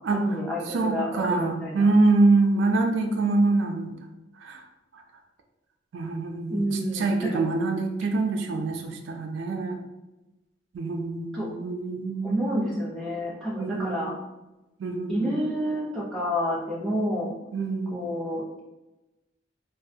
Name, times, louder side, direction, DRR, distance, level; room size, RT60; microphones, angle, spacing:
voice 1, 0.1-1.9 6.5-7.4 11.3-11.5 12.2-14.1 15.1-17.3 17.9-18.6, equal, ahead, -7 dB, 0.7 m, -29 dB
voice 2, 0.7-3.9 4.4-4.6 4.9-5.0 5.9-6.6 6.9-9.8 10.7-12.8 13.6-14.1 14.8-15.4 17.5-18.1, right 3 dB, 80° right, 3 dB, 0.4 m, -25 dB
2.4 x 2.3 x 2.7 m, 1.0 s
head